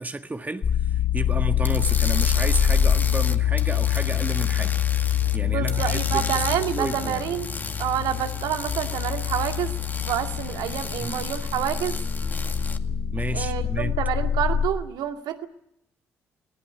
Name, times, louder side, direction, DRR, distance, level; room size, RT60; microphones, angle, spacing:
voice 1, 0.0-4.8 5.0-7.2 11.0-11.3 13.1-14.0, right 2 dB, 20° right, 1.7 m, -32 dB
sound 1, 0.6-14.7, left 9 dB, 50° left, 2.1 m, -25 dB
sound 2, 1.6-5.4 5.7-12.8, left 3 dB, 25° left, 2.2 m, -35 dB
voice 2, 5.4-7.5 7.8-9.7 10.0-12.0 13.3-15.5, right 10 dB, 70° right, 2.2 m, -28 dB
19.5 x 19.0 x 9.8 m
hypercardioid pair, 45°, 7 cm